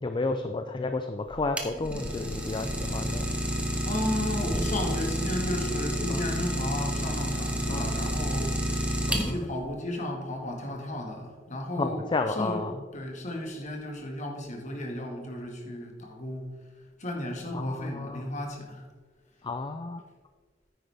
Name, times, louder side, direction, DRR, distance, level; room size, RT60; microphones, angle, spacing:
voice 1, 0.0-3.3 6.1-6.2 7.7-7.9 9.1-9.5 11.8-12.8 17.5-18.3 19.4-20.0, left 3 dB, 25° left, 7 dB, 0.4 m, -32 dB
Idling, 1.3-9.6, right 1 dB, 5° right, 1.1 m, -30 dB
voice 2, 3.8-8.8 9.2-12.0 12.3-12.6 12.9-16.4 17.0-18.8, left 1 dB, 40° left, 2 dB, 1.8 m, -34 dB
9.9 x 9.2 x 3.5 m, 1.4 s
head